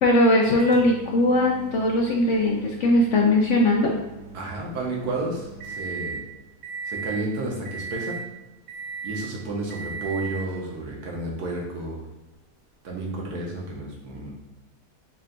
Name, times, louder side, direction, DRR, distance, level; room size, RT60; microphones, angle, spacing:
voice 1, 0.0-3.9, left 1 dB, 70° left, 0 dB, 0.7 m, -20 dB
Microwave oven, 0.6-6.2 6.6-7.2 7.6-8.3 8.7-9.3 9.7-10.5 11.5-11.6 13.6-13.7, right 4 dB, 65° right, 1.3 m, -37 dB
voice 2, 4.3-6.2 6.8-8.2 9.0-12.0 12.8-14.3, right 2 dB, 80° right, -2 dB, 1.5 m, -31 dB
4.4 x 2.2 x 3.8 m, 1.0 s
omnidirectional pair, 1.6 m